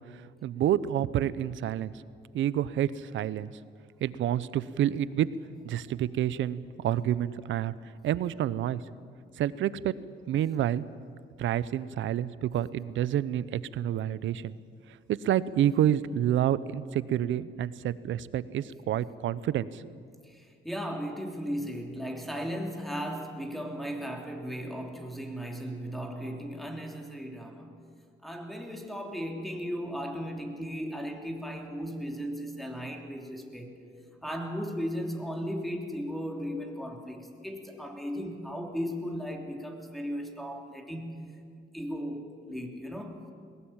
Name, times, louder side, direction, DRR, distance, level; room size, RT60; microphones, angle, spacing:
voice 1, 0.0-1.9 2.3-3.5 4.0-5.3 5.6-7.7 8.0-8.8 9.4-9.9 10.3-10.8 11.4-14.6 14.9-19.9, right 11 dB, 75° right, 17 dB, 0.8 m, -29 dB
voice 2, 20.2-27.7 28.2-33.8 34.2-43.3, equal, ahead, 3 dB, 3.2 m, -36 dB
21.5 x 18.0 x 8.9 m, 2.2 s
cardioid pair, 90°, 20 cm